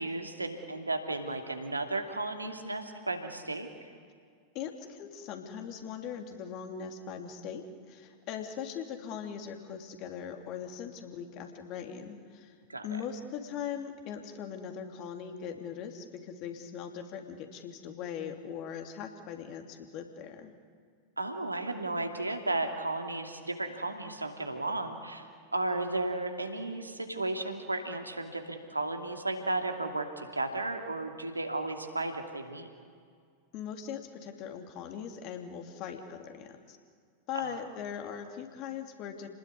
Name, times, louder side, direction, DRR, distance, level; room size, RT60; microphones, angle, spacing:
voice 1, 0.0-3.7 12.7-12.9 21.2-25.2 25.5-32.7 37.3-37.6, right 2 dB, 80° right, 5 dB, 2.7 m, -34 dB
voice 2, 4.5-12.5 12.8-20.6 33.5-36.8 37.3-39.3, left 8 dB, 40° left, 5 dB, 3.0 m, -40 dB
29.5 x 20.0 x 9.7 m, 2.1 s
figure-of-eight pair, 90°, 0 cm